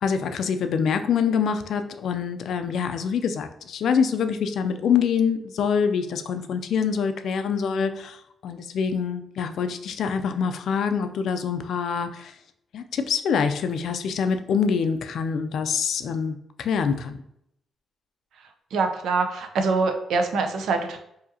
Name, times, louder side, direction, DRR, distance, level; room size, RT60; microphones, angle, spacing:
voice 1, 0.0-8.2 8.4-12.3 12.7-17.2, left 6 dB, 65° left, 8 dB, 0.4 m, -25 dB
voice 2, 18.7-21.0, right 4 dB, 75° right, 5 dB, 0.6 m, -24 dB
4.8 x 2.8 x 2.7 m, 0.76 s
cardioid pair, 150°, 0 cm